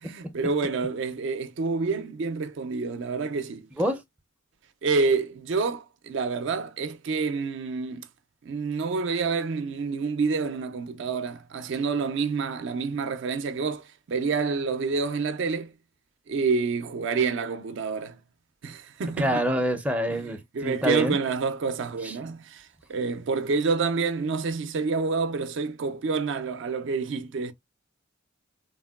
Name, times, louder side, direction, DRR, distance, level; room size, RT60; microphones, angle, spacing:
voice 1, 0.0-3.7 4.8-8.1 8.4-15.7 16.3-18.2 18.6-19.4 20.1-20.3 20.5-27.5, right 4 dB, 65° right, 0.4 m, -28 dB
voice 2, 19.2-21.2 22.0-22.1, equal, 5° right, 0.4 m, -26 dB
3.4 x 2.1 x 2.2 m
head